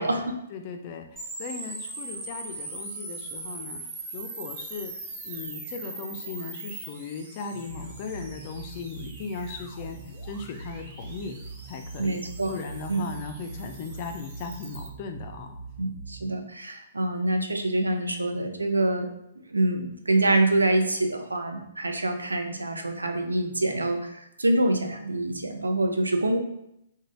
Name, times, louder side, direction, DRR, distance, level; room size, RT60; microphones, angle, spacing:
voice 1, 0.0-3.8 4.1-5.0 5.2-11.4 11.7-12.2 12.5-15.6, left 4 dB, 35° left, 5 dB, 0.3 m, -37 dB
sound 1, 1.2-14.9, right 3 dB, 25° right, 0.6 m, -41 dB
sound 2, 7.5-16.3, right 4 dB, 55° right, 0.8 m, -43 dB
voice 2, 12.0-12.5 12.9-13.0 15.8-19.1 19.5-26.4, right 2 dB, 80° right, 5 dB, 0.4 m, -25 dB
2.5 x 2.2 x 3.0 m, 0.81 s
figure-of-eight pair, 125°, 0 cm